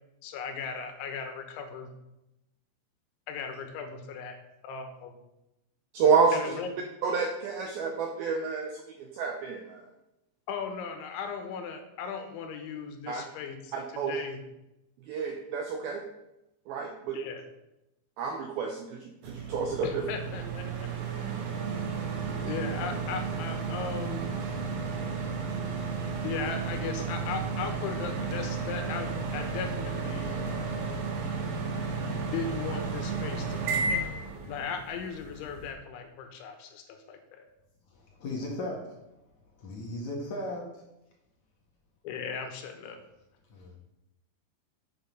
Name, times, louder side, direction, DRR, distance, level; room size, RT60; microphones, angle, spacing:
voice 1, 0.2-1.9 3.3-4.4 4.6-5.1 6.3-6.7 10.5-14.4 17.1-17.4 19.8-20.9 22.4-24.2 26.2-30.4 32.0-34.1 34.5-37.5 42.0-43.0, left 6 dB, 80° left, 3.5 m, -37 dB
voice 2, 5.9-6.6 7.0-8.8 9.1-9.8 13.1-13.2 13.7-14.2 15.1-16.0 16.7-17.2 18.2-20.1, right 5 dB, 85° right, 2.1 m, -29 dB
sound 1, 19.2-35.7, right 4 dB, 65° right, 2.6 m, -33 dB
voice 3, 38.2-38.7 39.6-40.6 43.5-43.8, left 1 dB, 60° left, 2.1 m, -35 dB
8.0 x 7.9 x 5.3 m
omnidirectional pair, 5.3 m